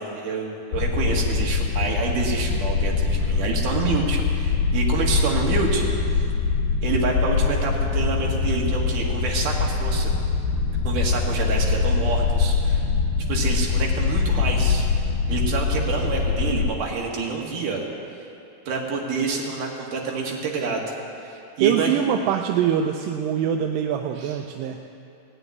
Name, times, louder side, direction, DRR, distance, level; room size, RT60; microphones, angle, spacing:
voice 1, 0.0-6.2 6.8-10.1 10.8-12.9 13.3-14.9 15.3-17.8 18.7-20.9 21.2-21.9 24.2-24.4, right 4 dB, 65° right, -1 dB, 3.1 m, -27 dB
sound 1, 0.7-16.7, left 5 dB, 70° left, 2.2 m, -23 dB
voice 2, 21.6-24.8, right 9 dB, 80° right, 4 dB, 2.2 m, -23 dB
17.5 x 7.0 x 9.5 m, 2.6 s
omnidirectional pair, 4.2 m